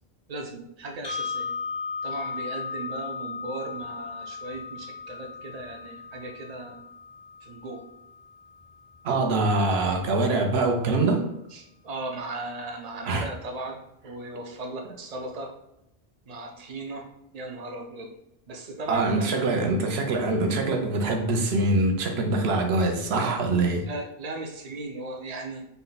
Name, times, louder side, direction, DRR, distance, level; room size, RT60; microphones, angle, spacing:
voice 1, 0.3-1.5 2.0-6.8 7.4-7.8 11.2-15.6 16.3-18.1 18.5-19.5 22.8-22.9 23.8-25.7, right 2 dB, 45° right, 3 dB, 0.6 m, -37 dB
sound 1, 1.0-9.1, left 5 dB, 35° left, 0.4 m, -36 dB
voice 2, 9.0-11.3 13.1-13.3 18.9-23.8, right 2 dB, 80° right, 4 dB, 0.9 m, -24 dB
4.0 x 2.2 x 3.8 m, 0.84 s
omnidirectional pair, 1.0 m